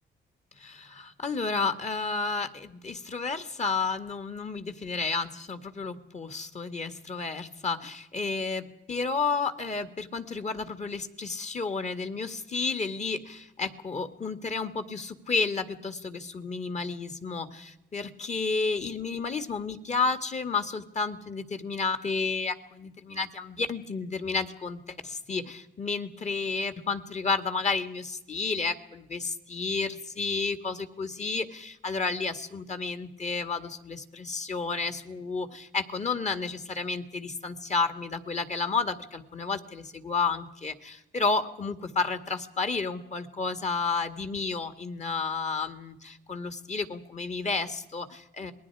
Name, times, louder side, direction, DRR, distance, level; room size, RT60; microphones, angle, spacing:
voice 1, 0.6-48.5, left 4 dB, 35° left, 10 dB, 2.2 m, -31 dB
27.5 x 20.5 x 4.9 m, 0.90 s
cardioid pair, 90°, 20 cm